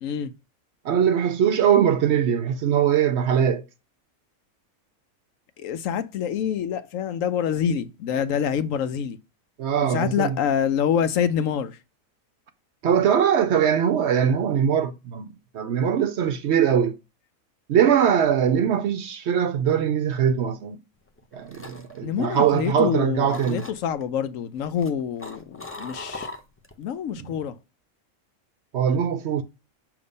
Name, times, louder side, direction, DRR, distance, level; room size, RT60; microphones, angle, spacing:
voice 1, 0.0-0.3 5.6-9.2 9.8-11.8 22.0-26.3 26.8-27.6, left 8 dB, 70° left, 1.0 m, -26 dB
voice 2, 0.8-3.6 9.6-10.4 12.8-17.0 17.7-20.8 21.3-23.6 27.2-27.3 28.7-29.4, right 8 dB, 65° right, 0.8 m, -21 dB
sound 1, 21.1-22.9 23.3-24.0 24.6-26.8 27.2-27.5, left 2 dB, 20° left, 0.4 m, -40 dB
6.9 x 2.9 x 5.2 m
omnidirectional pair, 1.4 m